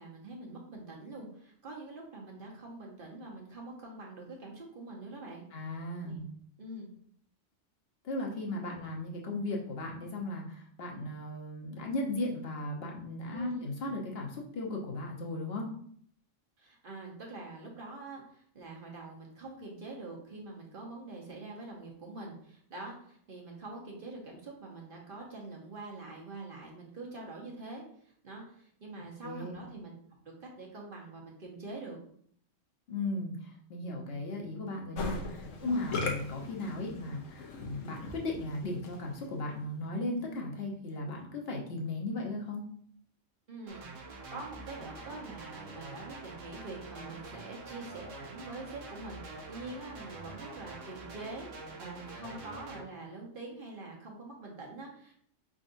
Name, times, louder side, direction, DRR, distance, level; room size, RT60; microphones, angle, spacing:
voice 1, 0.0-5.5 6.1-6.2 6.6-6.9 8.6-8.8 13.3-13.7 16.6-29.9 30.4-32.0 35.6-35.8 43.5-51.5 51.8-55.1, right 2 dB, 45° right, -1 dB, 1.2 m, -45 dB
voice 2, 5.5-6.2 8.0-15.7 29.2-29.6 32.9-42.6, left 2 dB, 55° left, 0 dB, 1.1 m, -36 dB
Musical instrument, 35.0-39.2, left 3 dB, 85° left, 1.1 m, -39 dB
sound 1, 43.7-52.8, right 3 dB, 85° right, 1.2 m, -46 dB
5.2 x 3.8 x 2.6 m, 0.62 s
omnidirectional pair, 1.3 m